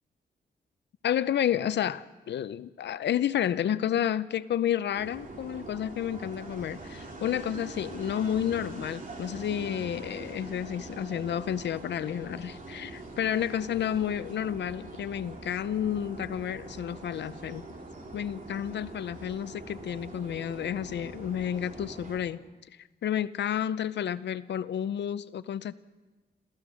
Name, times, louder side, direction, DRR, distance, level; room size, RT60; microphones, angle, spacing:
voice 1, 1.0-17.7 18.1-22.4 23.0-25.7, left 10 dB, 85° left, 15 dB, 0.6 m, -31 dB
sound 1, 4.9-22.2, right 2 dB, 50° right, 3.4 m, -43 dB
27.0 x 15.5 x 6.3 m, 1.3 s
wide cardioid pair, 130°, 18 cm